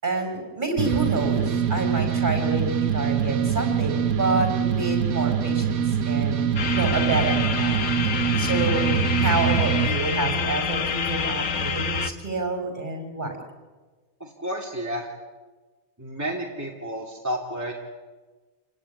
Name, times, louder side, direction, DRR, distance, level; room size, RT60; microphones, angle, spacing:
voice 1, 0.0-6.4 6.7-7.9 8.4-13.4, right 3 dB, 35° right, 4 dB, 5.6 m, -28 dB
sound 1, 0.8-9.9, right 8 dB, 85° right, 1.5 m, -24 dB
sound 2, 6.6-12.1, left 4 dB, 85° left, 1.7 m, -26 dB
voice 2, 14.2-15.1 16.0-17.7, equal, 10° right, -2 dB, 2.9 m, -31 dB
28.5 x 17.5 x 9.9 m, 1.3 s
omnidirectional pair, 1.5 m